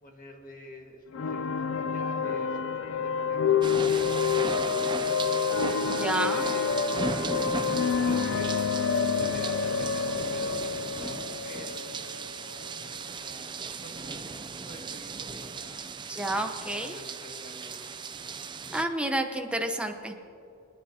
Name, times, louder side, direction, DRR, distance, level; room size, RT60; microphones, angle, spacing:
voice 1, 0.0-4.5 5.6-7.1 7.9-12.1 12.9-16.0 16.7-18.0, left 1 dB, 40° left, 1 dB, 1.7 m, -47 dB
sound 1, 1.1-12.8, left 6 dB, 65° left, 0.4 m, -28 dB
sound 2, 3.6-18.8, right 4 dB, 20° right, 0.4 m, -36 dB
voice 2, 5.9-6.5 16.1-17.0 18.7-20.2, right 1 dB, 5° right, 4 dB, 0.9 m, -30 dB
27.0 x 10.0 x 2.9 m, 2.6 s
head